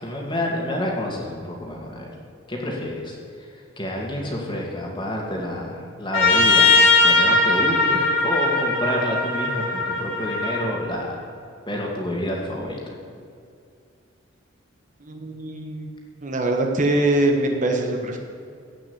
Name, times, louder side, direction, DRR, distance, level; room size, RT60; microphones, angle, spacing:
voice 1, 0.0-2.1 2.5-3.5 3.8-11.4 11.7-12.9, left 1 dB, 25° left, -1 dB, 2.3 m, -29 dB
Trumpet, 6.1-10.7, left 3 dB, 85° left, 4.2 m, -19 dB
voice 2, 15.0-15.9 16.2-18.2, right 1 dB, 40° right, 3 dB, 1.2 m, -23 dB
16.0 x 6.1 x 8.6 m, 2.4 s
head